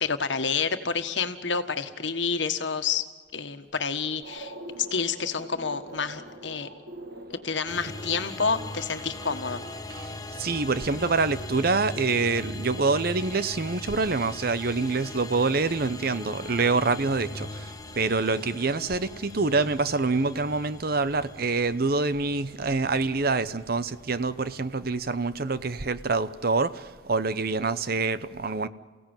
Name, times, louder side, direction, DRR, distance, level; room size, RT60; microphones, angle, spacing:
voice 1, 0.0-3.1 3.3-6.7 7.4-9.6, left 5 dB, 80° left, 1.5 m, -29 dB
sound 1, 4.2-10.2, right 1 dB, 80° right, 5.2 m, -44 dB
sound 2, 7.7-26.8, left 2 dB, 20° left, 1.2 m, -41 dB
voice 2, 10.4-28.7, right 3 dB, 55° right, 0.8 m, -26 dB
29.0 x 16.5 x 9.0 m
head